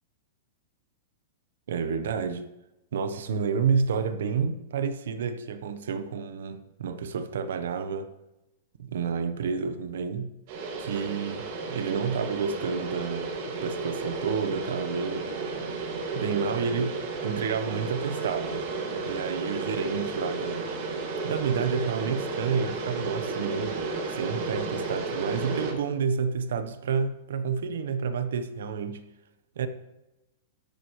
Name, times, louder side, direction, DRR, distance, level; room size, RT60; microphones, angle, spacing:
voice 1, 1.7-2.5 2.9-8.1 8.8-10.3 10.8-15.3 16.1-18.7 19.0-20.7 21.2-29.0 29.6-29.7, right 6 dB, 80° right, 1.0 m, -30 dB
sound 1, 10.5-25.7, right 3 dB, 40° right, 2.2 m, -33 dB
13.0 x 12.0 x 3.2 m
supercardioid pair, 175°, 0 cm